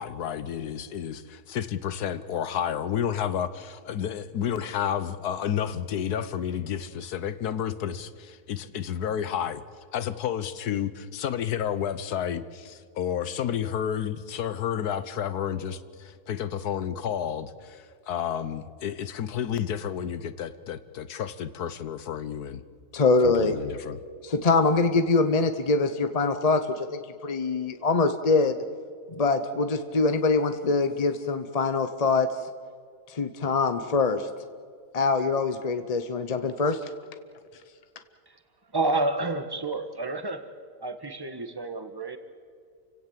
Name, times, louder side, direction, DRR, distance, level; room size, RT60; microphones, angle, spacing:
voice 1, 0.0-9.6 9.9-22.6 23.2-24.0, left 9 dB, 80° left, 14 dB, 1.5 m, -31 dB
voice 2, 22.9-23.5 24.2-28.6 29.1-32.4 33.1-34.3 34.9-36.9, left 3 dB, 35° left, 9 dB, 0.6 m, -24 dB
voice 3, 38.7-40.5 40.8-42.2, right 2 dB, 15° right, 8 dB, 1.4 m, -29 dB
29.5 x 17.0 x 7.5 m, 2.1 s
omnidirectional pair, 1.6 m